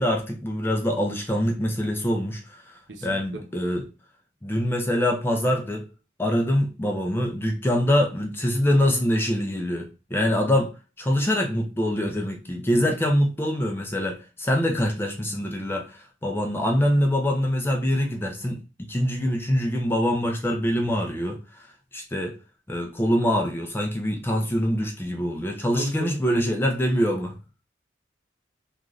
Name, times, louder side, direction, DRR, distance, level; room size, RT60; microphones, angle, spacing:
voice 1, 0.0-3.8 4.4-5.9 6.2-10.7 11.0-21.6 21.9-22.3 22.7-27.4, equal, 10° left, 0.4 m, -24 dB
voice 2, 2.9-3.4 25.7-26.2, right 3 dB, 80° right, 0.7 m, -37 dB
2.5 x 2.3 x 3.1 m
head